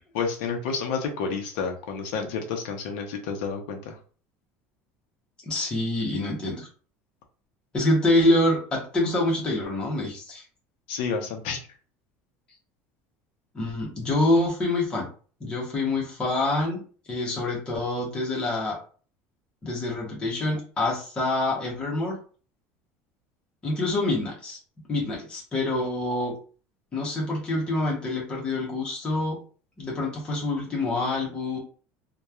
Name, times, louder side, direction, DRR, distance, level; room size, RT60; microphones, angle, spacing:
voice 1, 0.1-3.9 10.9-11.6, left 5 dB, 80° left, 4 dB, 0.6 m, -30 dB
voice 2, 5.5-6.7 7.7-10.4 13.5-15.1 15.4-16.8 17.1-18.8 19.6-22.2 23.6-24.6 24.9-26.3 26.9-29.4 29.8-31.6, left 2 dB, 15° left, -4 dB, 0.8 m, -26 dB
2.9 x 2.2 x 2.3 m, 0.40 s
cardioid pair, 175°, 6 cm